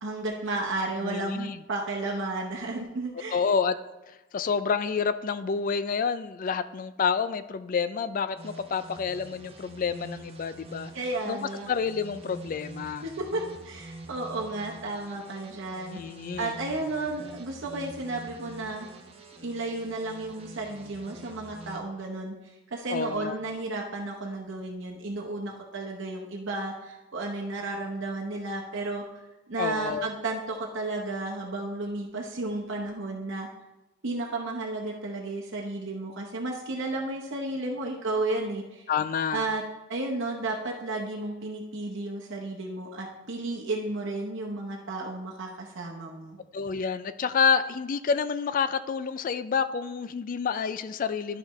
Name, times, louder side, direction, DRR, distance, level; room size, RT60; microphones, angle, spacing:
voice 1, 0.0-3.4 10.9-11.7 13.0-16.0 16.4-18.9 19.4-22.3 22.7-29.0 29.5-33.5 34.0-38.8 39.3-39.6 39.9-46.4, right 2 dB, 60° right, -1 dB, 0.8 m, -33 dB
voice 2, 1.0-1.6 3.3-3.7 4.3-10.9 11.3-11.4 11.7-13.1 15.9-16.5 22.9-23.4 29.6-30.1 38.9-39.5 46.5-51.4, left 6 dB, 40° left, 13 dB, 0.3 m, -28 dB
sound 1, 8.4-21.8, right 2 dB, 25° right, 0.8 m, -46 dB
12.0 x 4.9 x 3.1 m, 1.0 s
head